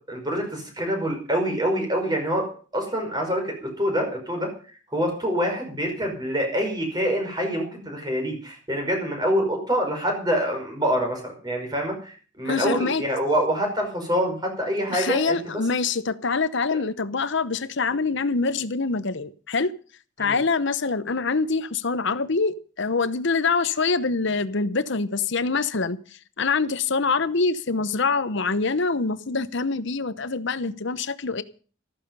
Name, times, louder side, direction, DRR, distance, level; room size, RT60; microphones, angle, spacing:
voice 1, 0.1-2.5 2.7-4.5 4.9-15.4 20.2-20.4, equal, 20° right, 5.3 m, -26 dB
voice 2, 12.4-13.0 14.9-19.7 20.2-31.4, left 4 dB, 60° left, 0.9 m, -25 dB
14.0 x 14.0 x 5.5 m
head